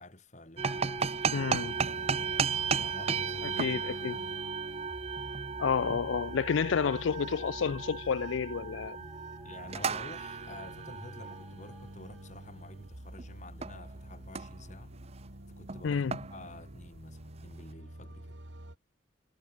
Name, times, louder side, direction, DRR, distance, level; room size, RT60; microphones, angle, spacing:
voice 1, 0.0-2.4 2.7-4.4 9.4-14.9 15.5-18.4, left 1 dB, 40° left, 5.0 m, -50 dB
sound 1, 0.6-12.9, equal, ahead, 6.8 m, -55 dB
sound 2, 0.6-13.3 13.6-13.9 14.2-14.7 15.0-15.3 15.7-17.2, right 5 dB, 30° right, 0.6 m, -35 dB
voice 2, 1.3-1.7 3.6-4.2 5.6-9.0 15.8-16.2, left 6 dB, 75° left, 0.4 m, -30 dB
sound 3, 1.6-18.8, right 1 dB, 65° right, 2.8 m, -48 dB
head